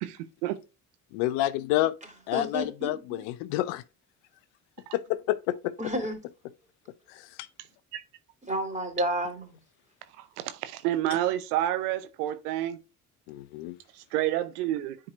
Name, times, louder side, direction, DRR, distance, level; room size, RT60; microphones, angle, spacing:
voice 1, 0.0-0.6 4.9-5.0 7.9-8.0 10.2-12.8 13.9-15.0, right 13 dB, 85° right, 0.7 m, -29 dB
voice 2, 1.1-1.9 2.3-3.8 4.9-5.7 13.3-13.8, left 15 dB, 75° left, 0.7 m, -28 dB
voice 3, 2.3-3.2 5.8-6.2 8.5-9.6, right 1 dB, 15° right, 3.5 m, -31 dB
9.8 x 4.8 x 2.4 m
hypercardioid pair, 55°, 45 cm